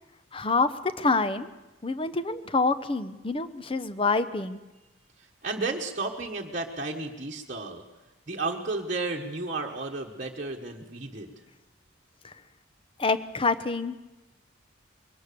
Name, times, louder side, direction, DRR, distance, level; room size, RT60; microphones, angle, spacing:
voice 1, 0.3-1.5 1.8-4.6 12.2-12.3 13.0-14.0, left 3 dB, 25° left, 12 dB, 0.8 m, -27 dB
voice 2, 5.2-7.8 8.3-11.3, right 3 dB, 40° right, -2 dB, 1.4 m, -33 dB
22.0 x 18.0 x 6.9 m, 1.1 s
head